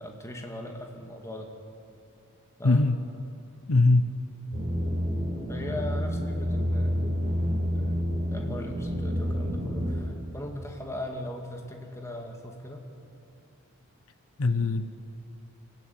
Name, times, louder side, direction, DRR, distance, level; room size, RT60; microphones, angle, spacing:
voice 1, 0.0-1.5 2.6-2.9 5.5-7.2 7.5-8.0 8.3-12.8, left 1 dB, 15° left, 2 dB, 2.1 m, -39 dB
voice 2, 2.6-3.0 3.7-4.1 14.4-14.9, left 2 dB, 70° left, 11 dB, 0.8 m, -21 dB
sound 1, 4.5-10.0, equal, 30° right, 4.3 m, -29 dB
25.0 x 15.0 x 9.3 m, 2.6 s
head